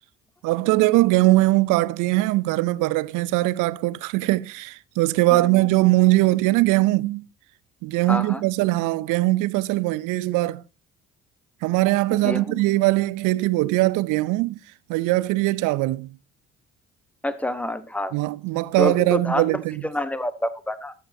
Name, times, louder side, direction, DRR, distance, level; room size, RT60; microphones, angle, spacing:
voice 1, 0.4-7.2 7.8-10.6 11.6-14.6 14.9-16.2 18.1-19.8, right 19 dB, 60° right, 0.5 m, -21 dB
voice 2, 5.3-5.7 8.1-8.4 12.1-12.6 17.2-18.1 18.8-19.5 19.9-20.9, left 1 dB, 5° left, 1.1 m, -28 dB
13.0 x 7.6 x 2.7 m
hypercardioid pair, 50°, 35 cm